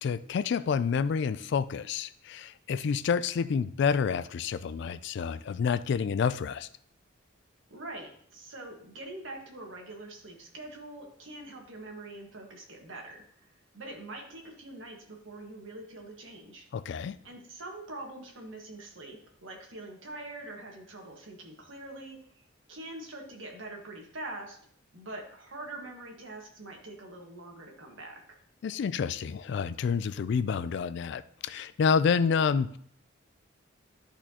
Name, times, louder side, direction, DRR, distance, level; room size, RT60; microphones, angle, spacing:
voice 1, 0.0-6.7 16.7-17.2 28.6-32.8, left 6 dB, 55° left, 15 dB, 0.3 m, -28 dB
voice 2, 7.7-16.6 17.2-22.2 22.7-24.6 24.9-28.4, right 2 dB, 70° right, 1 dB, 1.6 m, -44 dB
12.0 x 4.3 x 2.9 m, 0.63 s
head